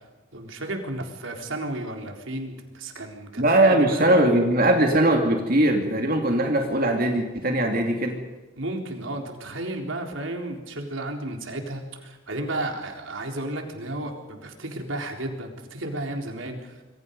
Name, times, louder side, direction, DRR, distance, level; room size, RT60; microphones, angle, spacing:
voice 1, 0.3-4.2 8.6-16.8, right 1 dB, 80° right, 3 dB, 3.9 m, -33 dB
voice 2, 3.4-8.2, right 1 dB, 45° right, 2 dB, 2.5 m, -20 dB
26.5 x 23.5 x 5.4 m, 1.2 s
head